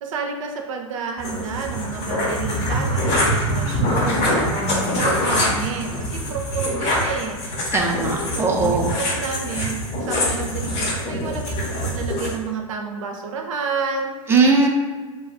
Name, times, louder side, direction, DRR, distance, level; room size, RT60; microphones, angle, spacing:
voice 1, 0.0-7.4 8.3-14.1, right 5 dB, 65° right, 3 dB, 0.5 m, -30 dB
sound 1, 1.2-12.3, equal, 35° left, 0.8 m, -24 dB
voice 2, 4.6-4.9 7.7-8.9 14.3-14.7, right 3 dB, 15° right, -1 dB, 0.4 m, -19 dB
2.3 x 2.0 x 3.5 m, 1.4 s
hypercardioid pair, 105°, 18 cm